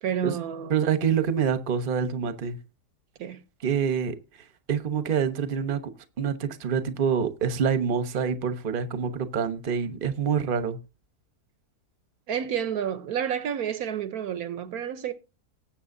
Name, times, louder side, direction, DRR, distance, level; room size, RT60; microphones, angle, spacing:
voice 1, 0.0-0.7 3.2-3.4 12.3-15.1, right 8 dB, 70° right, 1.2 m, -30 dB
voice 2, 0.7-2.6 3.6-4.2 4.7-5.8 6.2-10.8, right 7 dB, 40° right, 1.0 m, -26 dB
18.5 x 8.0 x 2.6 m
omnidirectional pair, 1.7 m